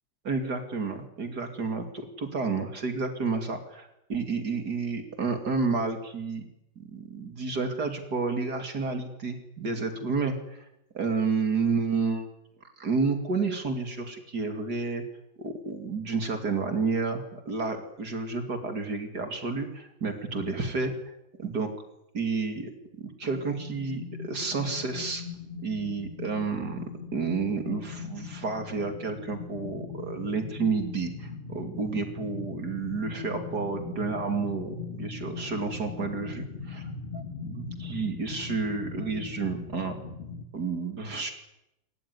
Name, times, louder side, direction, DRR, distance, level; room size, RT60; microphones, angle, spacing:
voice 1, 0.2-6.5 6.8-10.6 10.9-12.3 12.8-15.0 15.4-21.1 21.4-21.7 22.1-22.7 23.0-25.2 25.6-26.8 27.1-39.9 40.5-41.3, right 4 dB, 55° right, 6 dB, 3.2 m, -30 dB
sound 1, 23.2-40.4, left 5 dB, 35° left, 2.1 m, -40 dB
28.0 x 14.5 x 9.7 m, 0.86 s
omnidirectional pair, 2.0 m